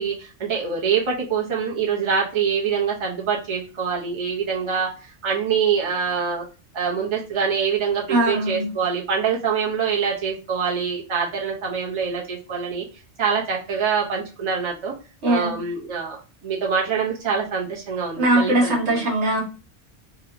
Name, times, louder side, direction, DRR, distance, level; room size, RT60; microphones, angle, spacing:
voice 1, 0.0-6.4 6.7-12.8 13.2-14.9 15.3-19.1, right 6 dB, 30° right, -3 dB, 0.8 m, -25 dB
voice 2, 8.1-8.7 15.2-15.6 18.2-19.4, right 1 dB, 75° right, -2 dB, 1.3 m, -20 dB
3.0 x 2.3 x 3.6 m, 0.33 s
omnidirectional pair, 1.2 m